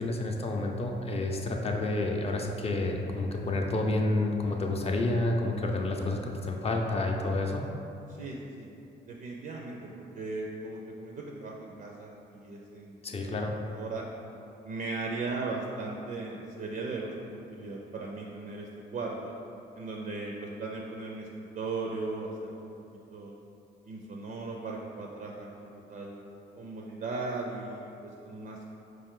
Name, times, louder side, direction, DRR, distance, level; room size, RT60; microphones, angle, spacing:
voice 1, 0.0-7.6 13.0-13.6, left 2 dB, 30° left, 1 dB, 0.5 m, -29 dB
voice 2, 8.1-8.7 9.1-13.3 13.7-14.0 14.6-19.3 19.8-22.7 23.1-23.3 23.8-26.2 26.6-28.7, right 3 dB, 45° right, -1 dB, 0.4 m, -37 dB
4.6 x 2.5 x 3.7 m, 2.8 s
cardioid pair, 90°, 20 cm